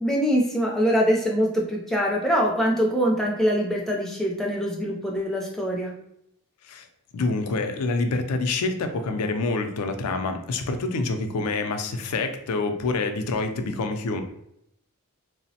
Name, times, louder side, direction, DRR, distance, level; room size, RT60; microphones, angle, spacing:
voice 1, 0.0-5.9, equal, ahead, -2 dB, 0.4 m, -23 dB
voice 2, 7.1-14.2, left 3 dB, 85° left, 6 dB, 0.4 m, -27 dB
3.1 x 2.0 x 2.7 m, 0.77 s
head